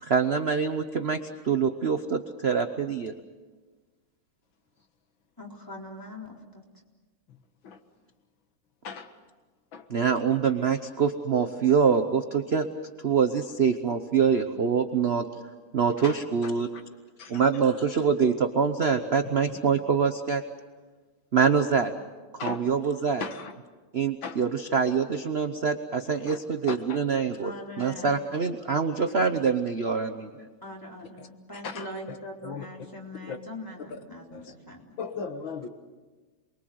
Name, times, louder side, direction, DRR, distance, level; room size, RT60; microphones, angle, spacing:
voice 1, 0.0-3.1 9.9-12.7 13.0-15.3 15.7-16.7 17.3-20.4 21.3-21.9 22.4-23.2 23.9-30.5, right 6 dB, 40° right, 7 dB, 0.9 m, -25 dB
voice 2, 5.4-6.6 27.4-28.2 30.6-34.8, left 1 dB, 10° left, -1 dB, 3.9 m, -42 dB
voice 3, 16.4-16.8 17.2-17.4 19.5-19.6 22.4-22.7 23.2-23.5 24.2-24.4 26.3-26.4 26.7-27.0 31.2-31.3 31.6-32.2 32.4-32.7 33.2-33.4 34.3-34.5 35.0-35.7, left 5 dB, 75° left, 8 dB, 2.2 m, -37 dB
28.0 x 21.5 x 7.8 m, 1.4 s
omnidirectional pair, 2.1 m